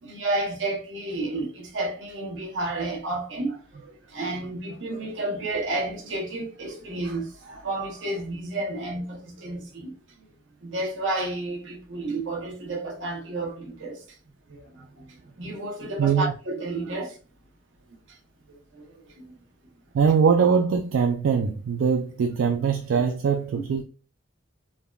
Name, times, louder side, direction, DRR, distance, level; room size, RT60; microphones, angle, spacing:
voice 1, 0.0-9.9 10.2-10.3 10.6-14.0 14.5-15.1 15.4-17.2 18.7-19.3 23.0-23.1 23.5-23.7, right 2 dB, 70° right, 0.8 m, -31 dB
voice 2, 16.0-16.3 17.0-17.1 19.9-23.8, right 6 dB, 85° right, 0.3 m, -22 dB
3.4 x 2.3 x 2.2 m
head